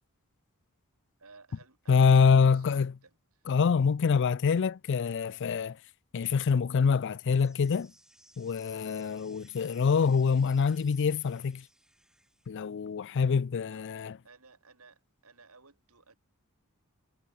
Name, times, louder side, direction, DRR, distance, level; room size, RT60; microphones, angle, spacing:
voice 1, 1.2-3.5 13.5-16.2, right 4 dB, 75° right, 4.4 m, -58 dB
voice 2, 1.9-2.9 3.5-5.8 6.1-7.9 8.4-11.6 12.5-14.2, left 5 dB, 55° left, 0.4 m, -25 dB
sound 1, 7.3-12.5, right 1 dB, 5° right, 4.2 m, -61 dB
head